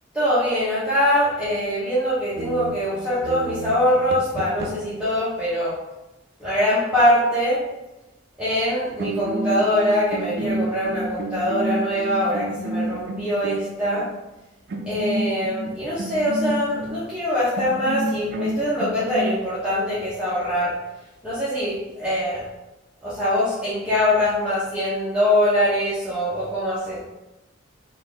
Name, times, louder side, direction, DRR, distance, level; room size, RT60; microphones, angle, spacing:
voice 1, 0.1-5.7 6.4-7.6 8.4-14.1 14.9-20.7 21.2-22.4 23.0-27.0, equal, 5° right, -12 dB, 0.9 m, -23 dB
sound 1, 2.4-5.0 8.6-8.7 9.0-14.1 14.7-17.0 17.6-19.4, right 1 dB, 55° right, 0.4 m, -30 dB
4.1 x 2.6 x 3.4 m, 1.0 s
head